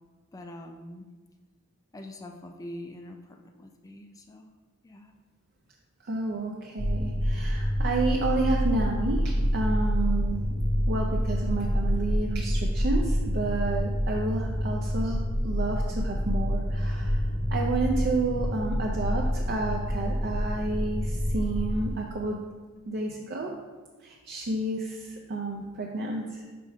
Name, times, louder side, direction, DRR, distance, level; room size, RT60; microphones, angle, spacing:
voice 1, 0.3-1.1 1.9-4.5 4.8-5.1, left 1 dB, 15° left, 5 dB, 0.3 m, -44 dB
voice 2, 6.0-10.4 10.9-22.4 22.9-23.5 24.0-26.5, right 3 dB, 50° right, 0 dB, 0.5 m, -31 dB
sound 1, 6.8-21.9, equal, 35° right, 1.0 m, -27 dB
5.1 x 4.5 x 4.8 m, 1.4 s
head